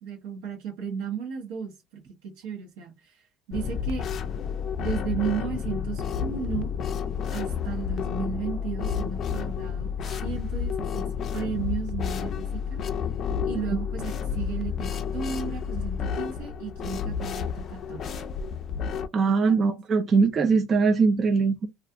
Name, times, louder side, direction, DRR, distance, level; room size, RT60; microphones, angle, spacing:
voice 1, 0.0-3.2 3.5-4.0 4.8-6.7 7.3-9.9 10.2-12.8 13.4-18.1 19.3-19.4, right 7 dB, 80° right, 0.9 m, -34 dB
sound 1, 3.5-19.1, left 7 dB, 45° left, 0.4 m, -30 dB
voice 2, 19.1-21.7, right 4 dB, 35° right, 0.4 m, -21 dB
2.4 x 2.3 x 2.6 m
supercardioid pair, 100°, 0 cm